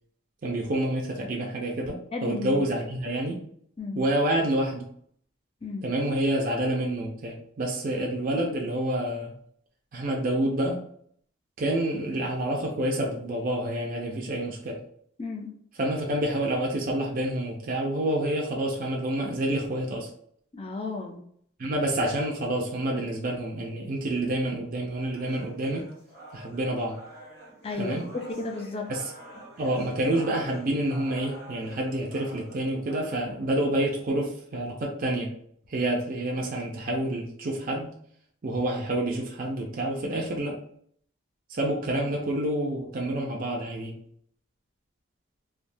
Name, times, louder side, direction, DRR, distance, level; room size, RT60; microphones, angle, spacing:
voice 1, 0.4-3.4 3.9-4.9 5.8-9.3 9.9-10.8 11.6-14.8 15.8-20.1 21.6-25.9 26.3-27.0 27.8-28.1 28.9-29.1 29.6-35.4 35.7-37.9 38.4-40.6 41.5-44.0, right 1 dB, 45° right, -1 dB, 0.4 m, -28 dB
voice 2, 2.1-2.6 3.8-4.0 5.6-5.9 15.2-15.5 20.5-21.2 27.6-28.9, left 3 dB, 30° left, 2 dB, 0.4 m, -33 dB
sound 1, 25.1-33.1, right 1 dB, 50° left, 1.4 m, -47 dB
3.3 x 2.2 x 2.6 m, 0.64 s
head